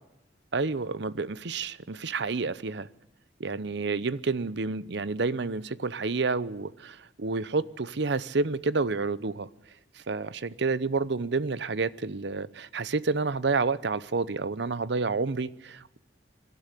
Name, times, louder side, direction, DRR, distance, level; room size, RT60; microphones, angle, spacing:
voice 1, 0.5-2.9 3.4-9.5 10.1-16.0, right 4 dB, 65° right, 0.8 m, -29 dB
24.0 x 12.0 x 9.7 m
head